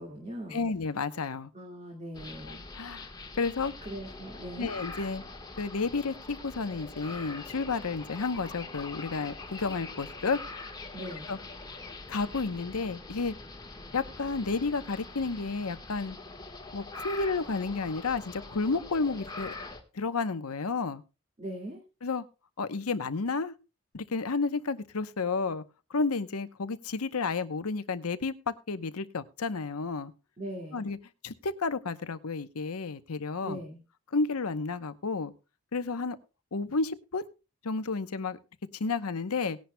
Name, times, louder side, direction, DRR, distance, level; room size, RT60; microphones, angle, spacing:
voice 1, 0.0-0.7 1.5-2.6 3.9-4.7 10.9-11.3 21.4-21.8 30.4-30.8 33.4-33.8, right 1 dB, 30° right, 0 dB, 1.9 m, -40 dB
voice 2, 0.5-1.5 2.5-3.1 3.4-3.7 4.6-5.2 5.6-10.4 11.3-11.4 12.1-13.3 13.9-16.2 16.7-19.6 19.9-21.0 22.0-22.2 22.6-23.5 23.9-25.6 25.9-30.1 30.7-31.0 31.2-33.6 34.1-35.3 35.7-36.2 36.5-37.2 37.6-38.4 38.7-39.6, left 4 dB, 90° left, 12 dB, 0.9 m, -31 dB
jungle ambience, 2.1-19.8, left 3 dB, 20° left, 1.4 m, -43 dB
19.0 x 10.5 x 2.2 m, 0.29 s
head